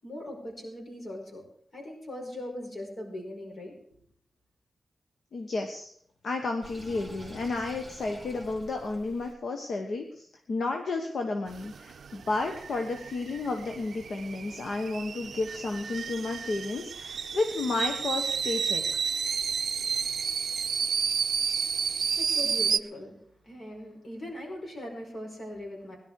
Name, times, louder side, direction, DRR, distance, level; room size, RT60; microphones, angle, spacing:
voice 1, 0.0-1.4 1.7-3.8 22.1-23.2 23.4-26.0, left 1 dB, 45° left, 0 dB, 5.0 m, -40 dB
voice 2, 5.3-5.9 6.2-18.8, left 3 dB, 70° left, 4 dB, 1.3 m, -32 dB
Sink (filling or washing), 6.6-9.4, equal, 10° left, 2.7 m, -47 dB
sound 1, 11.5-22.8, right 6 dB, 75° right, 0.5 m, -31 dB
17.5 x 11.0 x 4.7 m, 0.63 s
wide cardioid pair, 115°, 0 cm